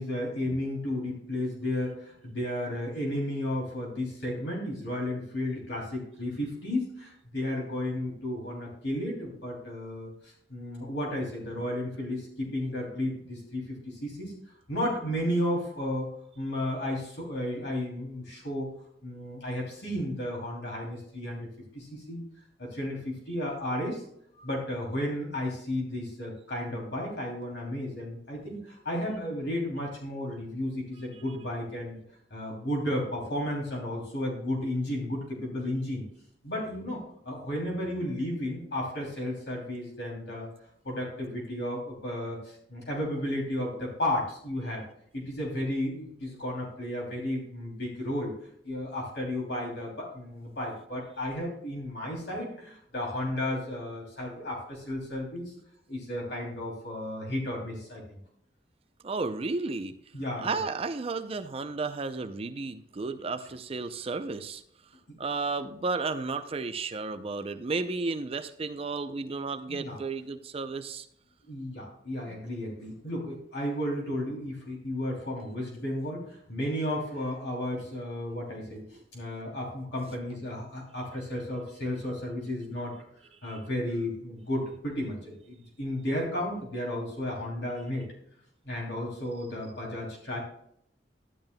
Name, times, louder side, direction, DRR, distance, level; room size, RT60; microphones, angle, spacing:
voice 1, 0.0-14.4 14.7-18.7 19.0-21.5 21.7-22.2 22.6-24.0 24.4-32.0 32.3-36.0 36.4-40.5 40.8-44.8 45.1-48.3 48.6-55.5 55.9-58.2 60.1-60.6 65.1-65.2 69.7-70.0 71.5-83.0 83.4-88.1 88.6-90.4, left 1 dB, 70° left, -2 dB, 2.8 m, -33 dB
voice 2, 59.0-59.9 60.4-64.6 65.2-71.1 72.3-72.4 78.9-79.0 83.4-83.6, right 3 dB, 35° right, 9 dB, 0.5 m, -33 dB
12.5 x 10.5 x 2.2 m, 0.69 s
head